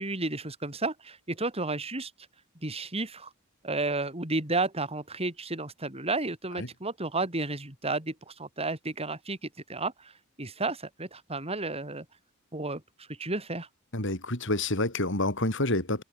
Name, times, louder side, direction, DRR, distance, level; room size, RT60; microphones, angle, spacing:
voice 1, 0.0-2.1 2.6-3.3 3.6-10.1 10.4-12.0 12.5-12.8 13.1-13.7, right 2 dB, 30° right, 5.1 m, -32 dB
voice 2, 13.9-16.0, left 2 dB, 60° left, 7.7 m, -28 dB
open air
head